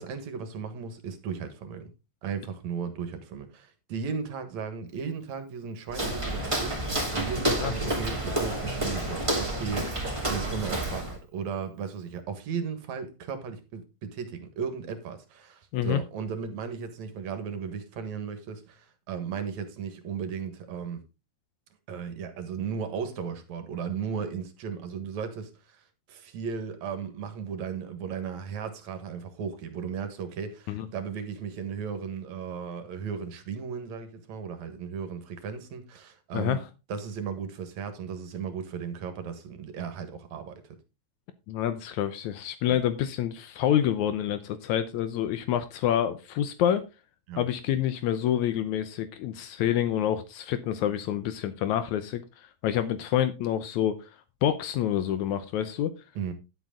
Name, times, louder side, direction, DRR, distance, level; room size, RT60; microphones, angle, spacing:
voice 1, 0.0-1.9 2.2-21.0 21.9-36.6 36.9-40.6 42.7-42.8 47.3-47.4 56.1-56.3, right 6 dB, 70° right, 2.7 m, -36 dB
Walk footsteps, 5.9-11.2, right 1 dB, 10° right, 2.8 m, -29 dB
voice 2, 41.5-46.8 47.4-52.2 52.6-54.0 54.4-55.9, left 10 dB, 80° left, 2.2 m, -27 dB
11.0 x 8.2 x 3.7 m
omnidirectional pair, 3.3 m